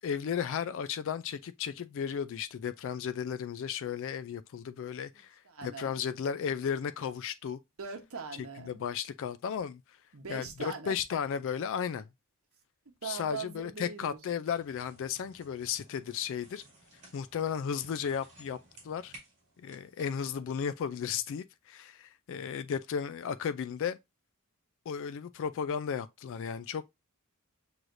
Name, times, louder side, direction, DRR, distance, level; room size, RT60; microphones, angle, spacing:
voice 1, 0.0-7.6 8.6-9.8 10.3-12.1 13.0-16.6 17.1-18.6 18.8-19.1 19.6-24.0 24.9-26.8, left 7 dB, 60° left, 0.3 m, -34 dB
voice 2, 5.1-6.0 7.8-8.8 10.1-11.0 13.0-14.2, right 5 dB, 65° right, 1.0 m, -41 dB
sound 1, 14.4-20.6, right 1 dB, 35° right, 2.3 m, -57 dB
6.3 x 3.1 x 2.6 m
head